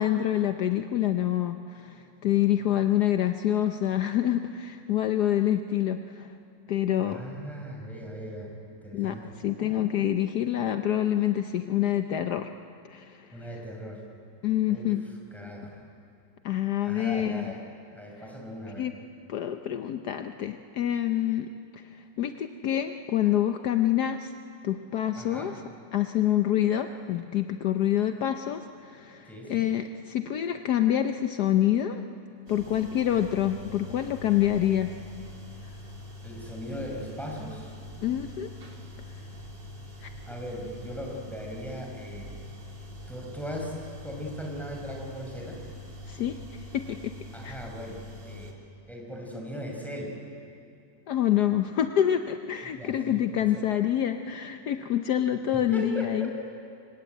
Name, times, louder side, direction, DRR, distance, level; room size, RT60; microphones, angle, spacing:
voice 1, 0.0-6.3 6.7-7.2 8.9-9.2 9.4-12.5 12.9-13.3 14.4-15.0 16.4-17.5 18.8-18.9 19.3-24.3 24.6-25.5 25.9-32.0 32.5-34.9 38.0-38.5 40.0-40.1 46.1-47.1 47.4-47.5 51.1-56.3, left 11 dB, 70° left, 7 dB, 1.3 m, -27 dB
voice 2, 7.0-9.3 13.3-14.0 14.7-14.9 15.3-15.8 16.8-17.6 17.9-18.9 25.2-25.6 29.3-29.7 36.2-37.7 40.3-42.4 43.1-45.6 47.3-48.6 48.9-50.2 52.6-53.7 55.7-56.2, equal, ahead, -1 dB, 5.3 m, -39 dB
sound 1, 32.5-48.5, left 1 dB, 85° right, 3.6 m, -44 dB
25.5 x 23.5 x 9.2 m, 2.5 s
omnidirectional pair, 1.9 m